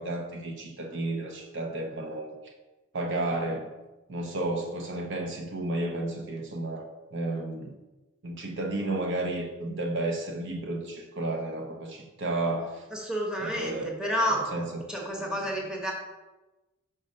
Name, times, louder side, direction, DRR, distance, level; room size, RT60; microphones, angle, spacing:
voice 1, 0.0-2.3 2.9-3.7 4.1-6.8 7.1-7.7 8.2-12.8 13.4-13.9 14.2-14.6, right 2 dB, 55° right, 2 dB, 0.7 m, -32 dB
voice 2, 12.9-14.5 14.9-15.9, equal, 5° right, -2 dB, 1.0 m, -30 dB
5.3 x 4.0 x 5.2 m, 1.1 s
head